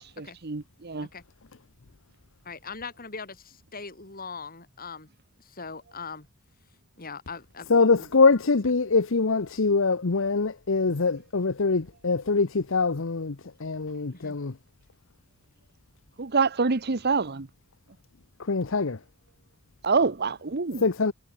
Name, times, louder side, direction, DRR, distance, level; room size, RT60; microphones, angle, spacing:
voice 1, 0.2-1.1 16.2-17.5 19.8-20.8, right 4 dB, 50° right, 1.0 m, -26 dB
voice 2, 2.4-5.1 5.4-6.3 7.0-7.7 14.1-14.4, left 5 dB, 40° left, 4.6 m, -40 dB
voice 3, 7.7-14.6 18.4-19.0 20.8-21.1, left 4 dB, 60° left, 0.9 m, -23 dB
head